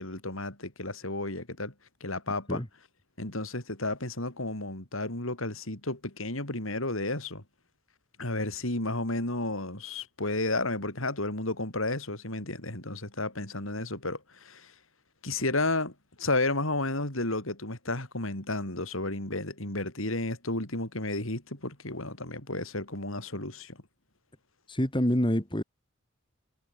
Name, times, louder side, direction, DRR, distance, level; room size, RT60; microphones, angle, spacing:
voice 1, 0.0-1.7 2.0-2.6 3.2-7.4 8.2-14.7 15.2-23.8, left 2 dB, 75° left, 5.8 m, -32 dB
voice 2, 24.7-25.6, equal, 25° left, 3.1 m, -26 dB
head